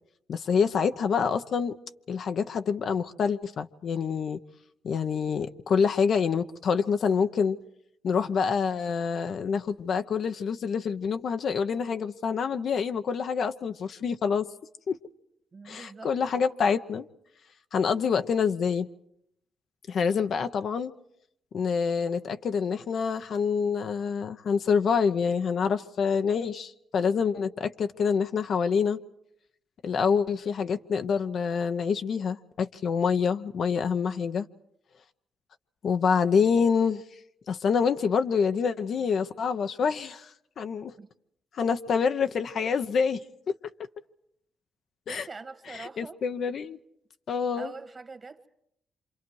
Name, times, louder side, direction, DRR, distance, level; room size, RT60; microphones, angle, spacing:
voice 1, 0.3-1.7 2.1-4.4 4.8-7.6 8.0-14.5 14.9-15.0 15.7-17.1 17.7-18.9 19.9-20.9 21.5-29.0 29.8-34.5 35.8-37.0 37.5-40.3 40.6-40.9 41.5-43.2 45.1-45.3 45.7-46.8 47.3-47.7, left 6 dB, 65° left, 0.8 m, -26 dB
voice 2, 15.5-16.1 41.0-41.1 45.1-46.2 47.6-48.5, right 4 dB, 35° right, 1.8 m, -43 dB
27.0 x 26.5 x 4.8 m
cardioid pair, 70°, 0 cm